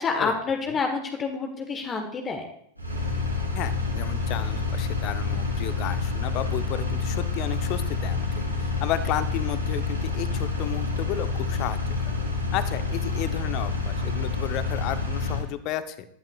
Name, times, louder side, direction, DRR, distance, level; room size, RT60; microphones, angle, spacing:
voice 1, 0.0-2.5, left 4 dB, 20° left, 4 dB, 1.4 m, -28 dB
Engine, 2.8-15.4, left 4 dB, 90° right, 3.8 m, -28 dB
voice 2, 3.5-11.8 12.1-12.2 12.5-16.1, left 11 dB, 40° left, 12 dB, 0.9 m, -33 dB
20.0 x 12.0 x 2.5 m, 0.70 s
figure-of-eight pair, 90°, 0 cm